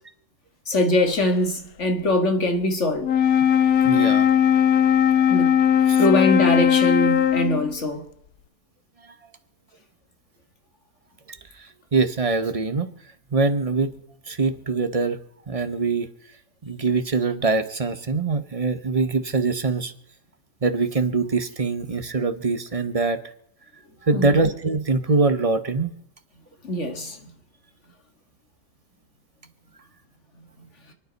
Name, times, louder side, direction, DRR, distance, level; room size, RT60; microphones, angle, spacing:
voice 1, 0.7-3.1 5.3-5.5 6.0-8.0 24.1-24.3 26.6-27.2, left 1 dB, 50° left, 2.1 m, -22 dB
Wind instrument woodwind instrument, 3.0-7.8, left 9 dB, 70° left, 1.2 m, -18 dB
voice 2, 3.8-4.3 5.9-6.0 11.3-12.9 13.3-14.0 14.3-15.2 15.5-16.1 16.6-19.9 20.6-23.2 24.0-26.0, right 3 dB, 30° right, 0.8 m, -23 dB
28.5 x 9.5 x 4.1 m
omnidirectional pair, 1.7 m